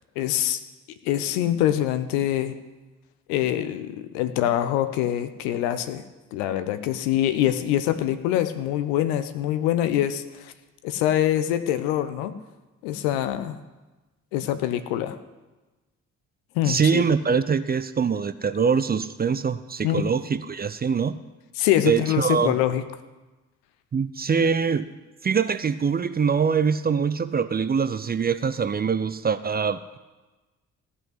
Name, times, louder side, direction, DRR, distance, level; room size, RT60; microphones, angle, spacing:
voice 1, 0.2-0.6 1.0-2.5 3.3-6.0 6.3-10.5 10.8-12.3 12.8-13.6 14.3-15.2 16.5-17.0 19.8-20.0 21.6-22.8, left 12 dB, 65° left, 10 dB, 0.9 m, -24 dB
voice 2, 16.7-21.2 21.8-22.6 23.9-24.9 25.2-30.0, right 6 dB, 20° right, 12 dB, 0.6 m, -23 dB
15.0 x 5.7 x 9.6 m, 1.2 s
figure-of-eight pair, 45°, 42 cm